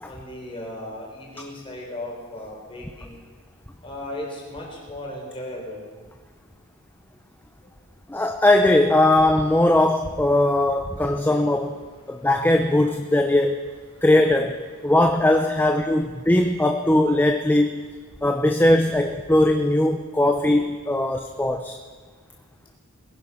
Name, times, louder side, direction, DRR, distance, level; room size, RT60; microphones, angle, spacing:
voice 1, 0.0-3.2 3.8-5.9 7.6-7.7 11.0-11.2 12.0-12.3 13.9-14.1 16.2-16.3, left 1 dB, 25° left, -2 dB, 4.3 m, -37 dB
voice 2, 8.1-11.8 12.1-13.6 14.0-17.8 18.2-21.8, left 1 dB, 10° left, 5 dB, 0.6 m, -20 dB
20.5 x 10.5 x 5.6 m, 1.5 s
head